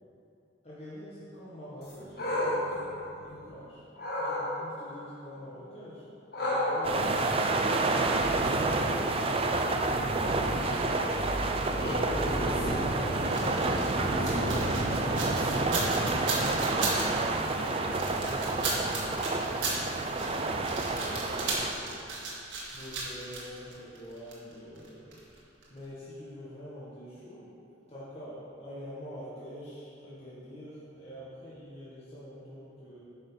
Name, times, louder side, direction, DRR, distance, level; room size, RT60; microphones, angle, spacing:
voice 1, 0.6-2.8 3.1-3.8 4.2-6.1 6.3-11.0 11.6-13.4 15.8-18.5 19.0-22.0 22.7-25.3 25.7-27.5 27.9-33.0, equal, 35° left, -10 dB, 1.5 m, -45 dB
sound 1, 1.8-3.5 4.0-4.5 6.3-15.8, left 1 dB, 55° left, 1.7 m, -35 dB
sound 2, 6.8-21.7, right 2 dB, 30° right, 0.5 m, -29 dB
sound 3, 13.3-25.4 25.6-25.7, right 3 dB, 80° right, 1.8 m, -36 dB
9.2 x 5.3 x 5.7 m, 2.8 s
head